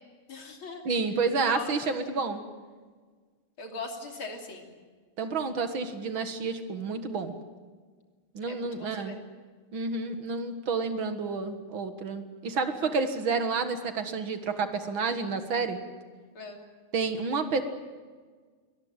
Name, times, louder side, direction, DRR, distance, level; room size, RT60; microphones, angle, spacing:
voice 1, 0.3-0.8 1.5-1.8 2.0-2.3 3.6-4.7 8.5-9.2 16.4-16.6, left 4 dB, 70° left, 2 dB, 3.8 m, -40 dB
voice 2, 0.9-2.4 5.2-7.3 8.3-9.2 9.7-15.8 16.9-17.6, right 4 dB, 65° right, 8 dB, 2.4 m, -30 dB
23.0 x 19.5 x 8.9 m, 1.5 s
omnidirectional pair, 2.4 m